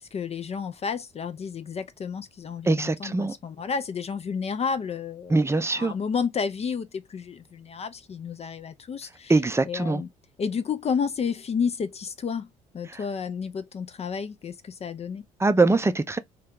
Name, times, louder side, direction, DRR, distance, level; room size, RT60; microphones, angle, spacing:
voice 1, 0.0-5.4 5.7-9.3 9.7-10.1 10.4-12.5 12.7-15.2, left 6 dB, 40° left, 0.5 m, -31 dB
voice 2, 2.6-3.3 5.3-5.9 9.3-10.0 12.9-13.0 15.4-16.2, right 3 dB, 15° right, 0.5 m, -22 dB
2.8 x 2.3 x 3.5 m
supercardioid pair, 65°, 17 cm